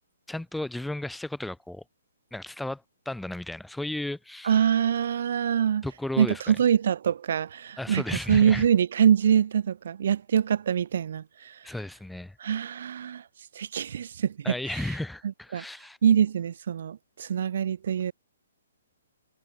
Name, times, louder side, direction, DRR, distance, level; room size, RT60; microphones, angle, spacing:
voice 1, 0.3-1.8 2.3-4.6 5.8-6.4 7.8-8.6 11.6-12.4 14.4-16.0, left 1 dB, ahead, 1.4 m, -34 dB
voice 2, 4.4-5.9 6.2-11.7 12.4-13.3 13.5-14.4 14.7-14.8 15.5-15.6 16.0-18.1, right 8 dB, 55° right, 0.9 m, -24 dB
figure-of-eight pair, 125°, 0 cm